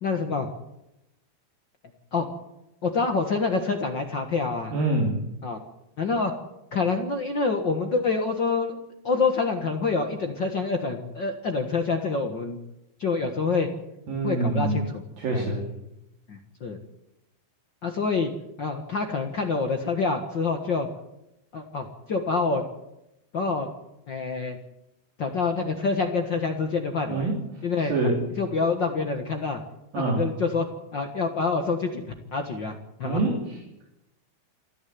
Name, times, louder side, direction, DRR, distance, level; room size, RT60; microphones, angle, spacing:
voice 1, 0.0-0.5 2.1-2.3 2.8-4.7 5.4-5.6 6.0-6.3 6.7-8.8 9.0-12.6 13.0-13.7 14.2-15.0 15.3-15.5 16.3-16.8 17.8-18.3 18.6-20.9 21.5-22.6 23.3-23.7 24.1-24.6 25.2-27.3 27.6-29.6 29.9-30.6 30.9-32.0 32.3-33.2, left 4 dB, 65° left, 4 dB, 1.1 m, -26 dB
voice 2, 4.7-5.2 14.1-14.8 15.2-15.7 27.1-27.4 27.9-28.2 29.9-30.3 33.0-33.6, right 2 dB, 65° right, 0 dB, 4.7 m, -25 dB
28.0 x 10.0 x 9.5 m, 0.88 s
omnidirectional pair, 4.5 m